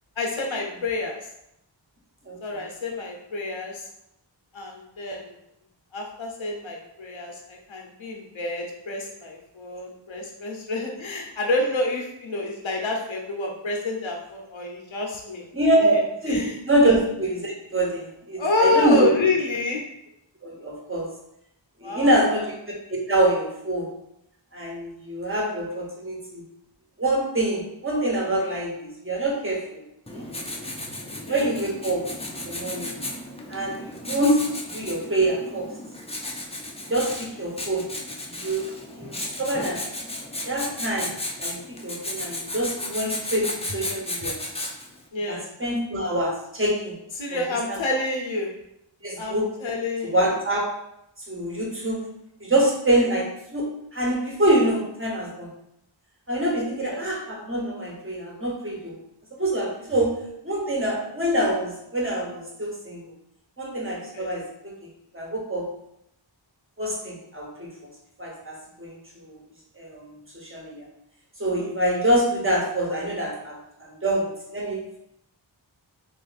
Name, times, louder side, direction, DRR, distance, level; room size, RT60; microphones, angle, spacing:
voice 1, 0.2-1.2 2.4-3.8 4.5-5.3 5.9-15.4 15.8-16.0 16.3-16.6 16.8-17.0 18.4-19.8 21.8-22.4 31.3-31.5 45.1-45.5 47.2-48.5 49.2-50.4 56.8-57.0 64.1-64.3 71.6-72.0, left 2 dB, 85° left, 0 dB, 0.9 m, -28 dB
voice 2, 2.2-2.6 15.5-15.9 16.2-16.4 16.6-19.1 20.4-21.1 21.8-22.4 22.9-23.9 24.5-26.4 27.0-29.8 30.1-30.3 31.3-32.0 32.4-32.9 33.5-34.4 34.7-35.7 36.9-37.8 38.3-38.7 39.0-39.8 40.5-41.1 41.4-44.4 45.3-46.9 47.3-47.4 47.7-47.8 49.0-49.5 50.0-50.7 51.3-52.0 52.4-55.5 56.3-59.0 59.4-60.1 60.4-63.0 63.6-64.7 65.1-65.6 66.8-67.7 68.2-68.9 69.2-69.4 69.8-70.9 71.4-75.0, right 1 dB, 25° right, -2 dB, 1.1 m, -25 dB
Writing, 30.1-45.0, left 1 dB, 15° left, 0.5 m, -34 dB
3.3 x 2.5 x 4.1 m, 0.80 s
wide cardioid pair, 65°, 45 cm